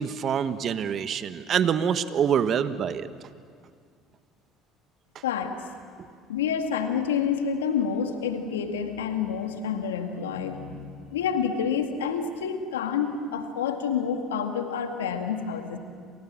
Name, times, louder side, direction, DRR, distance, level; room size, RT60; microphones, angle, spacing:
voice 1, 0.0-3.1, right 8 dB, 50° right, 12 dB, 1.4 m, -25 dB
voice 2, 5.2-5.6 6.3-15.8, left 7 dB, 85° left, 5 dB, 2.1 m, -28 dB
29.5 x 27.0 x 7.6 m, 2.1 s
hypercardioid pair, 65°, 0 cm